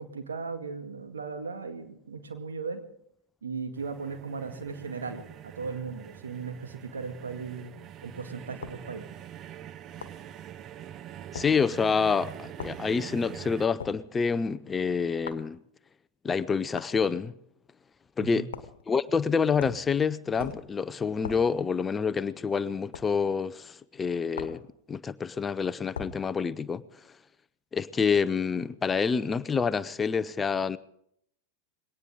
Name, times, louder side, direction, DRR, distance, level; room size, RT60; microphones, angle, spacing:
voice 1, 0.0-2.8 3.4-7.7 8.0-9.1 18.2-18.5, right 5 dB, 70° right, 2.1 m, -37 dB
sound 1, 3.8-13.7, right 10 dB, 30° right, 0.7 m, -44 dB
sound 2, 8.6-8.8 10.0-10.2 11.3-11.5 12.6-12.8 13.8-14.0 15.3-15.5 16.8-17.0 18.5-18.8 19.6-19.9 20.4-20.7 21.2-21.5 22.9-23.1 24.3-24.7 25.9-26.2, left 7 dB, 65° left, 1.2 m, -40 dB
voice 2, 11.3-15.6 16.2-17.3 18.2-18.5 18.9-24.6 24.9-26.8 27.7-30.8, left 5 dB, 15° left, 0.6 m, -27 dB
21.5 x 18.0 x 3.8 m
figure-of-eight pair, 90°, 0 cm